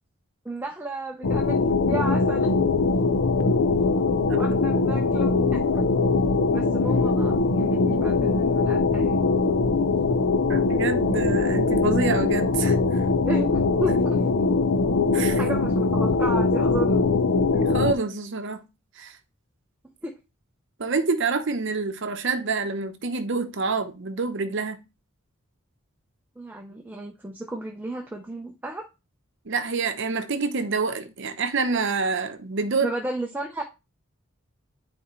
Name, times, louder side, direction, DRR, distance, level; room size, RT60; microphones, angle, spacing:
voice 1, 0.4-2.5 4.4-5.9 6.5-9.2 13.3-14.2 15.4-17.0 20.0-20.1 26.4-28.8 32.8-33.6, right 1 dB, 10° right, 0.7 m, -33 dB
sound 1, 1.2-17.9, left 3 dB, 65° left, 0.6 m, -22 dB
voice 2, 10.5-13.0 15.1-15.4 17.5-18.6 19.0-19.2 20.8-24.8 29.5-32.9, right 4 dB, 60° right, 0.8 m, -27 dB
9.8 x 4.3 x 3.1 m
head